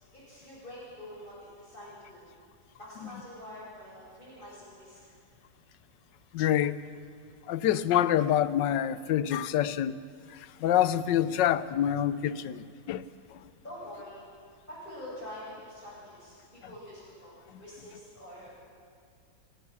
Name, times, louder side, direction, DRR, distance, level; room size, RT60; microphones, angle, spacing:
voice 1, 0.1-2.2 2.8-5.0 13.6-14.2 14.7-17.3 17.6-18.7, left 1 dB, 25° left, 7.3 m, -45 dB
voice 2, 6.3-6.8 7.5-10.0 10.3-13.4 17.5-17.6, left 11 dB, 90° left, 1.4 m, -27 dB
28.0 x 17.0 x 7.0 m
omnidirectional pair, 1.9 m